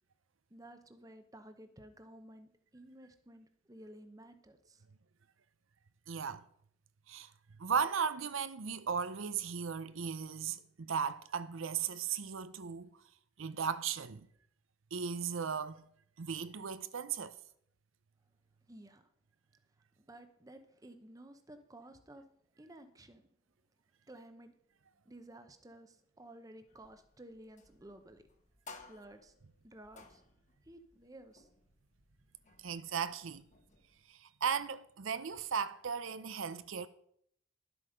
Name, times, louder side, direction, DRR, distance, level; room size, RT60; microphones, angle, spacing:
voice 1, 0.5-4.8 18.7-19.0 20.0-22.2 22.6-23.3 24.1-24.5 25.0-28.2 28.9-29.3 29.6-30.2 30.6-31.5, right 1 dB, 15° right, 0.8 m, -54 dB
voice 2, 6.1-6.4 7.1-7.3 7.6-13.0 13.4-14.3 14.9-15.9 16.2-17.4 32.6-33.4 34.1-36.9, right 6 dB, 75° right, 0.7 m, -36 dB
sound 1, 26.7-34.1, left 3 dB, 35° left, 1.1 m, -59 dB
12.0 x 7.9 x 5.1 m
head